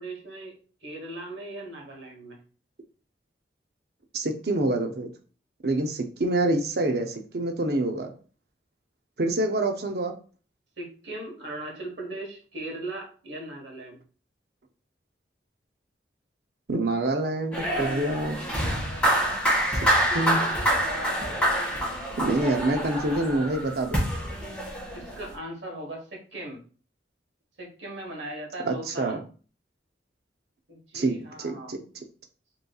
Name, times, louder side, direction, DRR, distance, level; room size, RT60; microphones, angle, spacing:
voice 1, 0.0-2.4 10.8-14.0 24.9-26.6 27.6-29.2 30.7-31.7, right 1 dB, 80° right, 1 dB, 1.3 m, -38 dB
voice 2, 4.1-5.1 5.6-8.1 9.2-10.1 16.7-18.5 20.1-20.4 22.2-24.0 28.6-29.2 30.9-31.8, right 2 dB, 60° right, 5 dB, 0.6 m, -26 dB
sound 1, 17.5-25.3, right 1 dB, 5° left, 1.8 m, -26 dB
5.2 x 3.1 x 2.3 m, 0.40 s
head